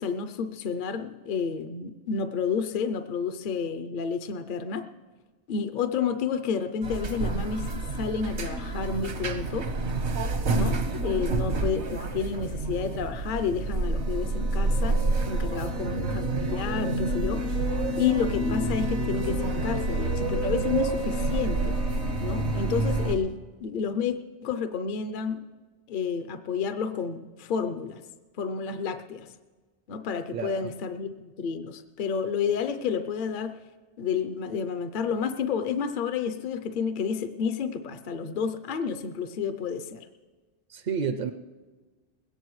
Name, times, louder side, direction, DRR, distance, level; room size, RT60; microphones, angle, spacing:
voice 1, 0.0-4.9 5.5-9.7 10.5-15.0 15.3-17.6 18.0-21.8 22.2-25.4 25.9-28.0 28.4-29.3 29.9-33.6 34.0-40.0, left 6 dB, 55° left, 9 dB, 0.7 m, -30 dB
sound 1, 6.8-23.2, right 2 dB, 80° right, 1.4 m, -28 dB
voice 2, 30.3-30.7 40.7-41.3, right 6 dB, 55° right, 7 dB, 0.6 m, -30 dB
20.5 x 17.0 x 3.1 m, 1.3 s
omnidirectional pair, 1.1 m